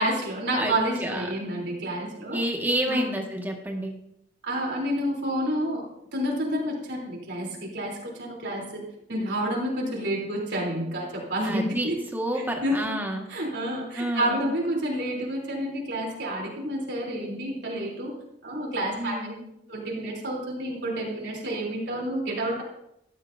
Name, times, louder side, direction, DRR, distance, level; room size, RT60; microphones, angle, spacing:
voice 1, 0.0-2.4 2.9-3.1 4.4-5.9 6.1-8.8 9.1-11.9 12.6-12.8 13.3-18.1 18.4-19.3 19.7-22.6, right 1 dB, 65° right, -3 dB, 3.6 m, -29 dB
voice 2, 0.5-1.3 2.3-3.9 11.4-13.3 14.0-14.5 19.0-19.5, right 1 dB, 10° right, 1 dB, 1.8 m, -30 dB
14.5 x 11.5 x 2.7 m, 0.79 s
head